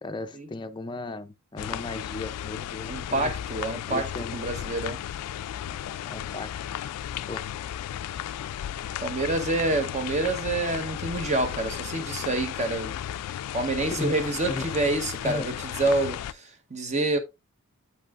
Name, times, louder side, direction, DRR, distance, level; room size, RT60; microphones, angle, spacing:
voice 1, 0.0-3.3 3.7-4.5 6.1-6.5 7.3-7.5 13.8-14.1 14.5-14.7 15.2-15.5, left 2 dB, 20° left, 0.5 m, -36 dB
sound 1, 1.6-16.3, left 10 dB, 85° left, 0.3 m, -35 dB
voice 2, 2.9-5.0 9.0-12.9 13.5-17.2, right 2 dB, 30° right, 0.9 m, -27 dB
8.3 x 5.5 x 2.4 m
head